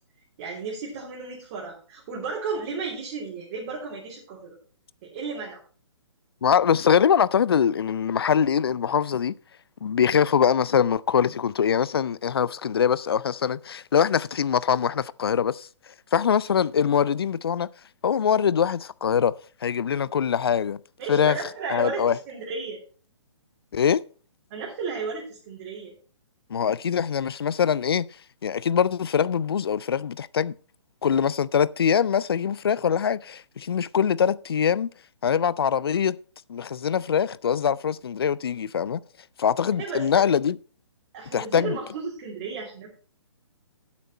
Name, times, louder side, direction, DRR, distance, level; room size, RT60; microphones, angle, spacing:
voice 1, 0.4-4.5 5.0-5.6 21.0-22.8 24.5-25.9 39.8-40.3 41.1-42.9, right 4 dB, 30° right, 3.3 m, -33 dB
voice 2, 6.4-9.3 9.8-15.7 16.1-17.7 18.0-19.3 19.6-20.8 21.1-21.4 21.7-22.2 23.7-24.0 26.5-28.1 28.4-30.5 31.0-34.9 35.2-36.2 36.5-39.0 39.4-40.6 41.3-41.8, left 7 dB, 55° left, 0.5 m, -23 dB
10.0 x 8.4 x 4.3 m
figure-of-eight pair, 130°, 15 cm